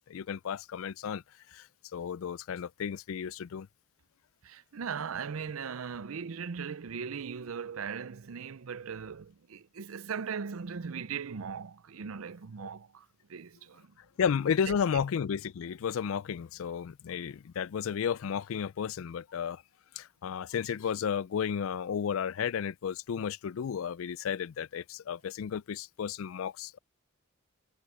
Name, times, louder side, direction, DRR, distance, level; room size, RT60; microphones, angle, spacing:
voice 1, 0.1-1.2 1.5-1.7 1.9-3.7 12.6-12.7 14.2-19.6 20.0-26.8, left 7 dB, 70° left, 0.4 m, -33 dB
voice 2, 4.4-13.9 14.7-15.0, right 6 dB, 75° right, 0.6 m, -39 dB
head